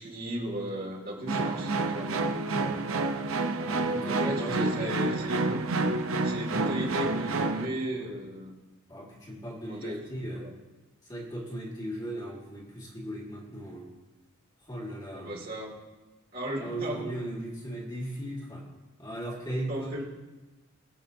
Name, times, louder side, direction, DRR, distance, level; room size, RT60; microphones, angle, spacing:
voice 1, 0.0-2.3 4.0-5.6 6.2-8.5 9.7-10.0 10.4-10.5 15.1-15.7 16.3-17.0 19.7-20.0, right 1 dB, 45° right, -2 dB, 2.6 m, -35 dB
sound 1, 1.3-7.7, right 3 dB, 80° right, 0.8 m, -29 dB
voice 2, 3.6-5.0 8.0-8.2 8.9-10.5 11.1-13.9 14.6-15.4 16.6-18.7 19.0-20.0, right 1 dB, 20° left, -4 dB, 2.1 m, -37 dB
22.0 x 7.9 x 2.8 m, 1.1 s
head